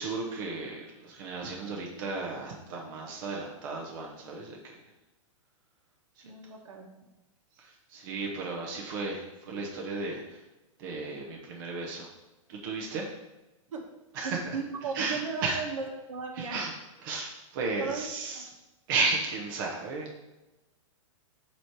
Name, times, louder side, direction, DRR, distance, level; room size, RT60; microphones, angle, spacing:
voice 1, 0.0-4.8 7.6-10.4 10.8-12.1 12.5-13.0 14.1-14.6 14.9-15.6 16.4-16.7 17.0-18.5 18.9-20.2, right 3 dB, 40° right, -1 dB, 0.9 m, -34 dB
voice 2, 6.2-6.9 13.7-13.8 14.2-16.6 17.8-18.0 18.3-18.5, right 5 dB, 75° right, 2 dB, 1.3 m, -36 dB
7.1 x 3.2 x 4.7 m, 1.0 s
hypercardioid pair, 165°, 17 cm